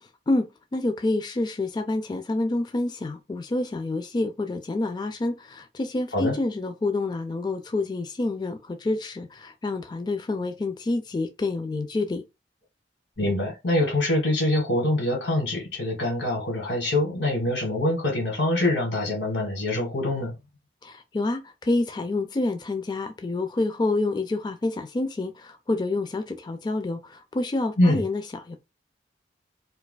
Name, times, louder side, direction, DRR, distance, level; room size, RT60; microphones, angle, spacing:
voice 1, 0.0-12.2 20.8-28.6, left 2 dB, 25° left, 0.3 m, -28 dB
voice 2, 13.2-20.3 27.8-28.0, left 1 dB, 85° left, 1.7 m, -24 dB
4.5 x 2.4 x 2.2 m
head